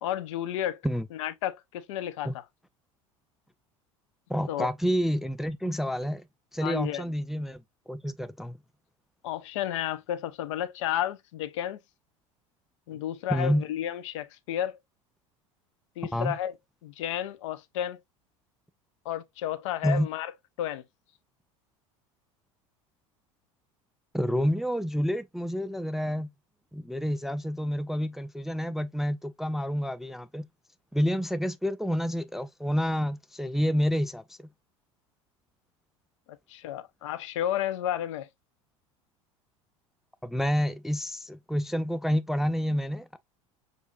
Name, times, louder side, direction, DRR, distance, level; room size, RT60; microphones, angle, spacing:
voice 1, 0.0-0.8 1.1-2.4 4.5-4.7 6.6-7.0 9.2-11.8 12.9-14.8 16.0-16.5 16.8-18.0 19.0-20.3 20.6-20.8 36.5-38.3, left 11 dB, 65° left, 0.6 m, -32 dB
voice 2, 4.3-6.2 6.5-8.6 12.9-13.0 13.3-13.6 16.1-16.4 19.8-20.1 24.1-26.3 26.7-30.5 30.9-34.5 40.2-43.2, equal, ahead, 0.3 m, -29 dB
6.3 x 2.6 x 2.4 m
figure-of-eight pair, 70°, 17 cm